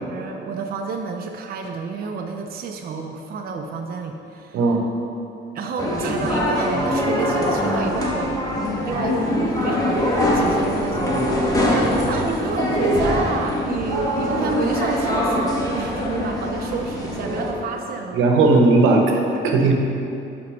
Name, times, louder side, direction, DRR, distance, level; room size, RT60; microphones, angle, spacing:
voice 1, 0.1-4.6 5.5-8.4 8.8-18.2, right 4 dB, 50° right, 3 dB, 0.5 m, -30 dB
sound 1, 5.8-17.5, equal, 20° left, 1.2 m, -22 dB
voice 2, 18.1-19.2 19.4-19.7, right 3 dB, 85° right, 2 dB, 0.8 m, -16 dB
5.6 x 4.4 x 5.1 m, 2.7 s
cardioid pair, 90°, 20 cm